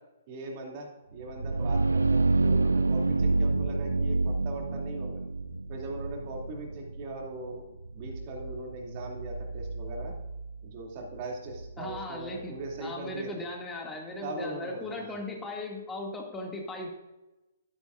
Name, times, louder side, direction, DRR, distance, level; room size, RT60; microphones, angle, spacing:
voice 1, 0.3-5.2 5.7-7.6 7.9-10.1 10.6-13.5 14.2-15.2, right 2 dB, 40° right, 0 dB, 2.6 m, -40 dB
sound 1, 1.2-12.8, right 3 dB, 85° right, 0.4 m, -29 dB
voice 2, 11.8-12.5 12.8-16.9, left 2 dB, 15° left, 0 dB, 2.2 m, -38 dB
11.5 x 10.5 x 2.5 m, 1.0 s
figure-of-eight pair, 125°, 0 cm